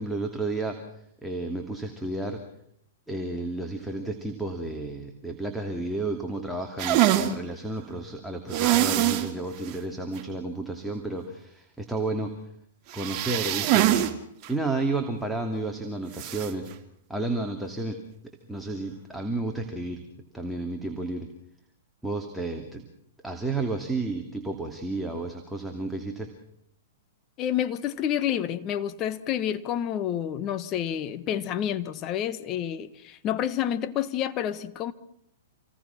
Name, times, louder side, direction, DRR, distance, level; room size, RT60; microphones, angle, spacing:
voice 1, 0.0-2.4 3.1-12.3 12.9-14.2 14.5-16.7 17.1-18.0 18.5-20.0 20.3-21.3 22.0-22.8 23.2-26.3, right 2 dB, ahead, 2.7 m, -32 dB
sound 1, 6.8-7.3 8.5-9.3 9.7-9.8 10.2-10.3 12.9-14.1 14.4-14.5 16.1-16.5, right 13 dB, 35° right, 2.9 m, -23 dB
voice 2, 27.4-34.9, left 10 dB, 35° left, 1.4 m, -29 dB
27.5 x 19.5 x 6.0 m
hypercardioid pair, 120°, 0 cm